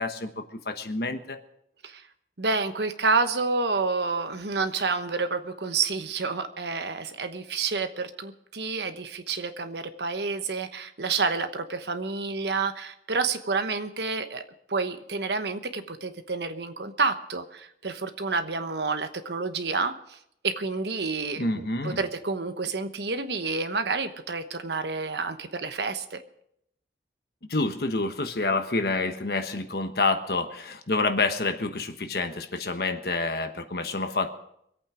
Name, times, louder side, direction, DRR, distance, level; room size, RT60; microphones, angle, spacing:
voice 1, 0.0-1.4 21.4-22.0 27.5-34.3, left 3 dB, 60° left, 7 dB, 1.2 m, -28 dB
voice 2, 2.4-14.4 14.7-20.2 20.4-21.5 21.8-26.2, right 4 dB, 75° right, 9 dB, 1.1 m, -29 dB
24.0 x 8.7 x 4.9 m, 0.74 s
head